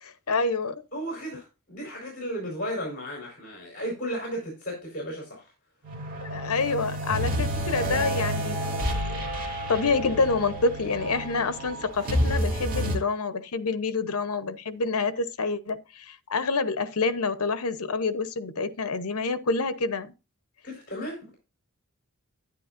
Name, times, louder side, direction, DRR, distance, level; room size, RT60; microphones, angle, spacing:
voice 1, 0.0-0.8 6.2-20.1, left 4 dB, 80° left, 0.9 m, -28 dB
voice 2, 0.9-5.5 20.6-21.3, equal, 40° left, 4.5 m, -34 dB
sound 1, 5.8-13.0, equal, 40° right, 2.7 m, -29 dB
10.5 x 10.0 x 2.6 m
head